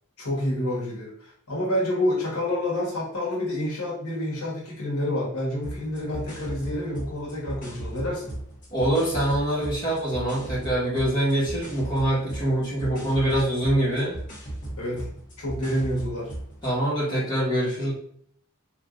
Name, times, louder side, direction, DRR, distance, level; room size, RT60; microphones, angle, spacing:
voice 1, 0.2-8.3 14.7-15.1 15.4-16.3, left 1 dB, 90° left, -4 dB, 1.2 m, -28 dB
sound 1, 5.6-16.8, right 1 dB, 40° left, 1.0 m, -37 dB
voice 2, 8.7-14.1 16.6-17.9, right 1 dB, 20° left, -8 dB, 1.3 m, -24 dB
3.7 x 2.5 x 2.4 m, 0.63 s
head